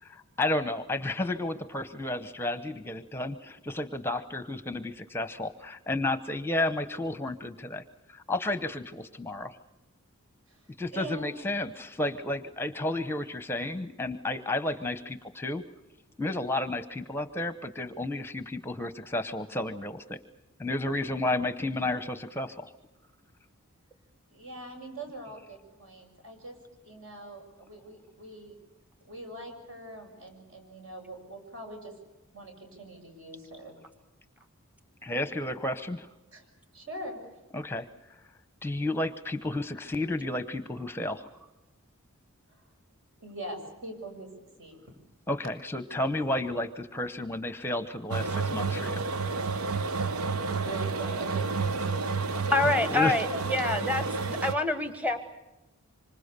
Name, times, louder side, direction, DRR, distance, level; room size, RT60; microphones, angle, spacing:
voice 1, 0.0-7.8 8.1-9.6 10.8-15.6 16.2-20.2 20.6-22.7 35.0-36.1 37.5-37.9 38.6-41.3 45.3-49.0 52.9-53.2, left 2 dB, 10° left, 11 dB, 0.8 m, -32 dB
voice 2, 10.5-11.4 24.3-26.6 26.8-28.6 29.0-32.0 32.3-33.8 36.3-36.5 36.7-37.2 42.5-42.7 43.2-44.3 44.6-44.8 50.5-53.4, right 1 dB, 65° right, 3 dB, 7.1 m, -42 dB
sound 1, 48.1-54.6, right 4 dB, 85° right, 0.9 m, -30 dB
voice 3, 52.5-55.2, left 2 dB, 5° right, 8 dB, 1.2 m, -27 dB
26.5 x 25.5 x 6.7 m, 1.0 s
head